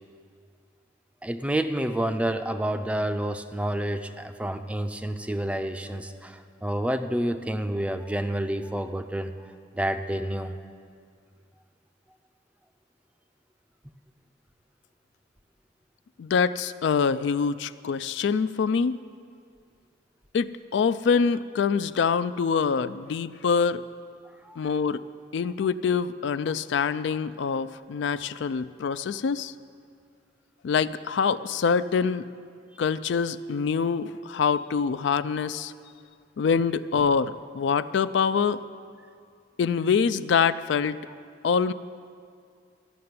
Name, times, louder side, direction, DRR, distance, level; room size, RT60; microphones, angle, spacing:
voice 1, 1.2-9.5 9.8-10.5 24.4-24.7, right 1 dB, 5° right, 8 dB, 0.4 m, -29 dB
voice 2, 16.2-18.9 20.3-23.8 24.6-25.0 25.3-29.5 30.6-32.2 32.8-35.7 36.4-38.6 39.6-41.0 41.4-41.7, left 6 dB, 70° left, 14 dB, 0.3 m, -25 dB
13.5 x 6.7 x 9.5 m, 2.3 s
head